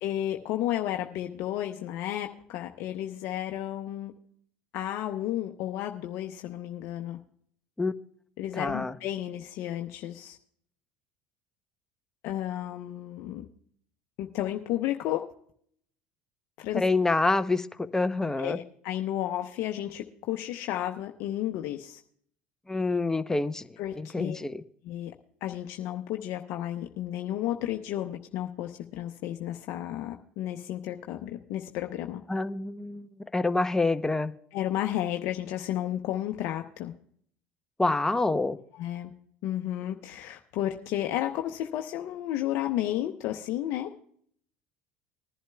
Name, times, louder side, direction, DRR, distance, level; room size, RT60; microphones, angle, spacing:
voice 1, 0.0-4.1 4.7-7.2 8.4-10.4 12.2-13.5 14.2-15.2 16.6-16.8 18.4-22.0 23.8-24.4 24.8-25.1 25.4-32.2 34.5-36.9 38.7-39.1 39.4-43.9, left 12 dB, 65° left, 0.7 m, -32 dB
voice 2, 8.6-8.9 16.7-18.6 22.7-23.7 23.9-24.6 32.3-34.3 37.8-38.6, left 3 dB, 10° left, 0.7 m, -27 dB
20.5 x 11.0 x 2.3 m
hypercardioid pair, 80°, 5 cm